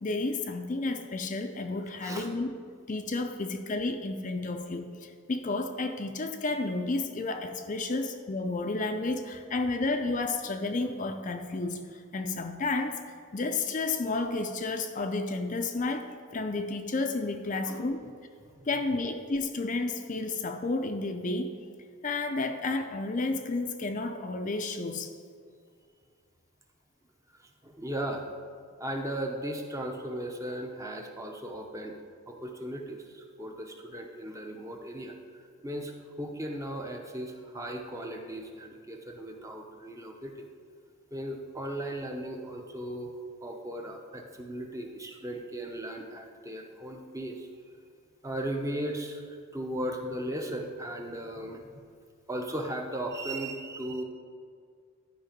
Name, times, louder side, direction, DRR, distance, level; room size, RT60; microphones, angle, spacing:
voice 1, 0.0-2.5 2.9-13.0 13.3-18.0 18.7-21.5 22.0-25.1, left 3 dB, 35° left, 5 dB, 0.5 m, -31 dB
voice 2, 27.4-28.2 28.8-32.0 32.3-40.3 41.1-47.5 48.2-49.2 49.5-51.6 52.3-54.0, right 1 dB, 15° right, 3 dB, 0.7 m, -37 dB
11.5 x 5.0 x 5.2 m, 2.1 s
head